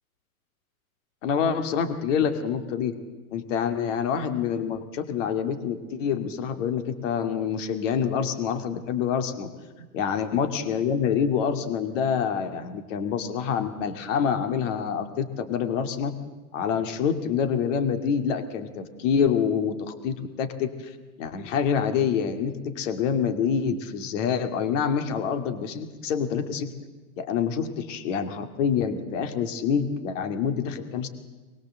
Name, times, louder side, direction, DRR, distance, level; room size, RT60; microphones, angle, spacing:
voice 1, 1.2-3.0 3.3-9.5 9.8-16.1 16.5-20.9 21.2-26.7 27.2-31.1, left 7 dB, 55° left, 8 dB, 2.5 m, -26 dB
24.5 x 21.5 x 7.8 m, 1.3 s
supercardioid pair, 155°, 43 cm